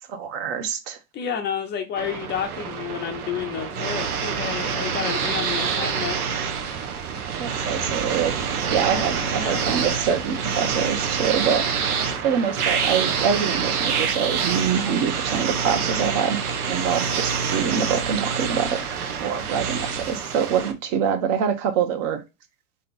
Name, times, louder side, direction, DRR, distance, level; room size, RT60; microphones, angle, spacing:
voice 1, 0.1-1.0 7.4-8.3 8.7-11.6 12.2-16.4 16.7-18.8 19.2-22.2, right 7 dB, 55° right, 1.1 m, -25 dB
voice 2, 1.1-6.2 9.2-9.7, left 8 dB, 25° left, 0.5 m, -30 dB
sound 1, 2.0-20.7, right 6 dB, 90° right, 1.0 m, -26 dB
sound 2, 3.2-20.2, right 6 dB, 25° right, 0.5 m, -40 dB
3.9 x 3.3 x 3.9 m
supercardioid pair, 125°, 43 cm